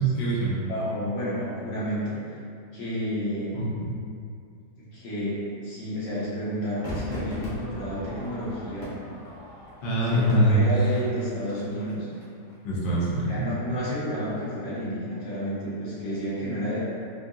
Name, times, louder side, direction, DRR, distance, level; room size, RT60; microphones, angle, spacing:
voice 1, 0.0-0.6 3.5-3.7 9.8-10.6 12.6-13.3, right 1 dB, 55° left, -7 dB, 0.5 m, -23 dB
voice 2, 0.7-2.4 2.7-3.6 4.9-8.9 10.0-12.1 13.3-16.8, equal, 75° left, -9 dB, 1.7 m, -31 dB
Crowd / Fireworks, 6.8-12.2 12.5-12.6, equal, 35° left, 0.9 m, -39 dB
4.2 x 2.7 x 2.4 m, 2.3 s
omnidirectional pair, 1.9 m